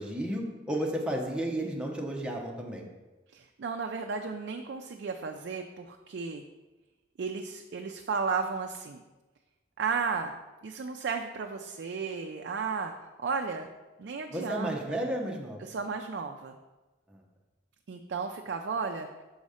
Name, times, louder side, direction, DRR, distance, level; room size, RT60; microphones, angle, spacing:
voice 1, 0.0-2.9 14.3-15.6 17.1-17.2, right 1 dB, 5° right, -1 dB, 0.8 m, -33 dB
voice 2, 3.3-6.4 7.2-9.0 9.8-10.3 10.6-13.7 14.0-15.0 15.6-16.6 17.9-19.1, right 5 dB, 60° right, 3 dB, 0.4 m, -34 dB
6.3 x 4.1 x 4.9 m, 1.1 s
head